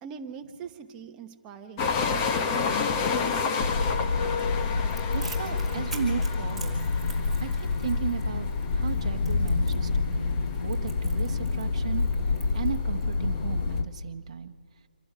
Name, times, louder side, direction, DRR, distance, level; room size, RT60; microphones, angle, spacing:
voice 1, 0.0-3.1, right 6 dB, 15° right, 5 dB, 1.1 m, -43 dB
sound 1, 1.8-13.8, left 5 dB, 20° left, 1.0 m, -32 dB
sound 2, 3.6-13.9, left 4 dB, 35° left, 1.3 m, -28 dB
Crackle, 4.9-13.1, right 4 dB, ahead, 3.9 m, -46 dB
voice 2, 5.1-6.8 7.4-10.4 10.6-12.0 12.5-14.5, right 7 dB, 40° right, 6 dB, 1.2 m, -35 dB
26.5 x 12.0 x 9.4 m, 2.1 s
figure-of-eight pair, 155°, 5 cm